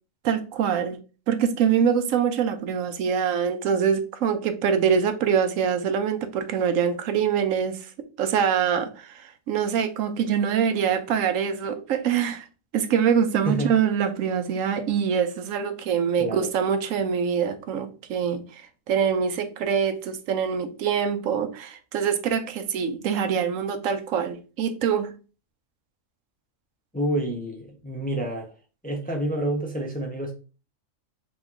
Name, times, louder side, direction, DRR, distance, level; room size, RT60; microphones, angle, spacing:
voice 1, 0.2-1.0 1.3-7.9 8.2-12.5 12.7-25.1, right 7 dB, 85° right, 1.0 m, -24 dB
voice 2, 16.2-16.5 26.9-28.5 28.8-30.3, right 1 dB, 10° left, 0.5 m, -28 dB
4.2 x 3.0 x 3.7 m
omnidirectional pair, 1.3 m